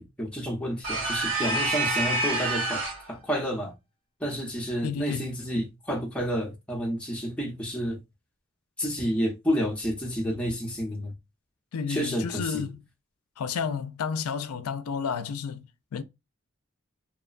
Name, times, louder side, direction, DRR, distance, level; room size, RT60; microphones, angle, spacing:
voice 1, 0.0-3.7 4.2-8.0 8.8-11.1 11.9-12.7, equal, 5° left, 0.7 m, -30 dB
sound 1, 0.8-3.1, right 2 dB, 70° right, 1.4 m, -27 dB
voice 2, 4.8-5.6 11.7-12.8 13.4-16.0, left 6 dB, 90° left, 0.4 m, -32 dB
2.9 x 2.2 x 2.4 m
head